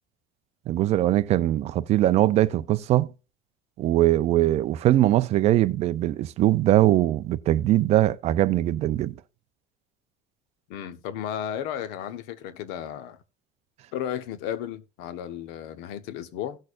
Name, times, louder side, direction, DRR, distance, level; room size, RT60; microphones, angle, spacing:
voice 1, 0.7-3.1 3.8-9.1, right 14 dB, 35° right, 0.5 m, -21 dB
voice 2, 10.7-13.2 13.9-16.6, left 10 dB, 65° left, 1.1 m, -34 dB
17.0 x 6.5 x 2.5 m
cardioid pair, 170°, 19 cm